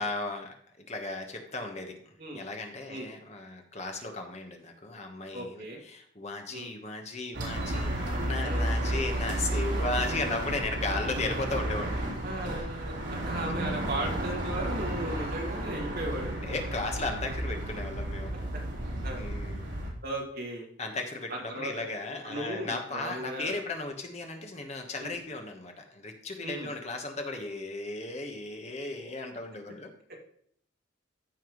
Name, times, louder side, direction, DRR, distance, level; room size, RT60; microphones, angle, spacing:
voice 1, 0.0-12.0 16.4-18.3 19.2-19.7 20.8-29.9, left 2 dB, 35° left, 3 dB, 1.2 m, -36 dB
voice 2, 5.3-5.8 6.5-6.7 8.4-8.7 12.2-16.4 19.0-19.3 20.0-20.7 21.3-21.9 22.2-23.5 25.0-25.2 26.4-26.7, right 1 dB, 50° right, -1 dB, 2.4 m, -36 dB
sound 1, 7.3-19.9, right 1 dB, 65° right, 3.6 m, -32 dB
14.5 x 5.7 x 3.1 m, 0.65 s
head